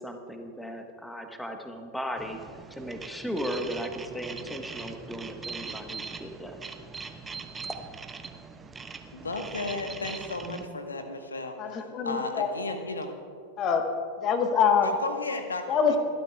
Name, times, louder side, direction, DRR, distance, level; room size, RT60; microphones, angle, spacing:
voice 1, 0.0-2.4 2.7-6.6 7.6-7.9 10.4-10.8, equal, 5° left, 5 dB, 1.3 m, -36 dB
sound 1, 2.2-10.7, right 4 dB, 15° right, 0.7 m, -41 dB
voice 2, 9.1-11.6 12.0-13.1 14.8-16.0, left 3 dB, 75° left, 6 dB, 1.3 m, -34 dB
voice 3, 11.6-12.5 13.6-13.9 14.2-14.9 15.7-16.0, left 6 dB, 30° left, 6 dB, 1.3 m, -24 dB
29.0 x 12.0 x 2.4 m, 2.3 s
figure-of-eight pair, 90°, 0 cm